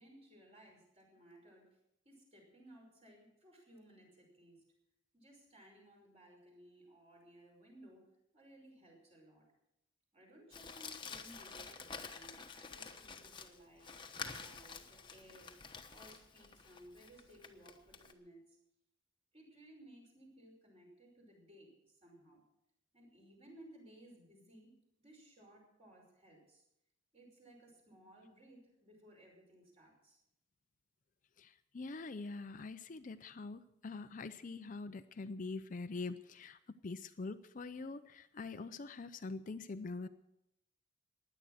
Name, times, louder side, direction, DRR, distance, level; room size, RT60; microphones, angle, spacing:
voice 1, 0.0-1.7 2.1-4.6 5.1-8.0 8.3-9.5 10.1-15.5 15.9-18.6 19.3-22.4 22.9-24.7 25.0-26.6 27.1-30.2, right 1 dB, 30° right, 0 dB, 5.6 m, -60 dB
Crumpling crinkling, 10.5-18.1, left 5 dB, 25° left, 1.1 m, -49 dB
voice 2, 31.4-36.6 36.8-40.1, left 3 dB, 40° left, 11 dB, 0.5 m, -44 dB
16.5 x 11.0 x 6.5 m, 0.81 s
head